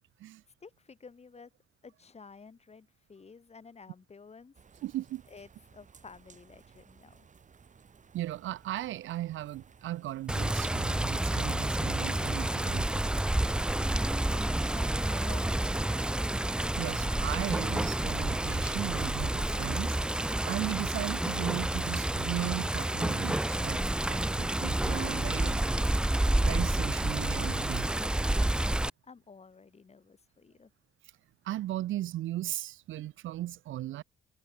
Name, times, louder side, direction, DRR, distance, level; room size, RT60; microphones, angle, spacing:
voice 1, 0.0-0.4 4.8-5.2 8.1-13.0 16.8-23.8 24.1-25.7 26.4-27.9 31.4-34.0, right 14 dB, 80° right, 1.1 m, -37 dB
voice 2, 0.6-1.5 1.8-4.5 5.3-7.3 13.4-16.3 29.0-30.7, left 5 dB, 30° left, 3.2 m, -52 dB
sound 1, 4.5-19.7, right 6 dB, 40° right, 2.6 m, -59 dB
Water, 10.3-28.9, right 1 dB, 5° right, 0.3 m, -29 dB
cardioid pair, 90°, 20 cm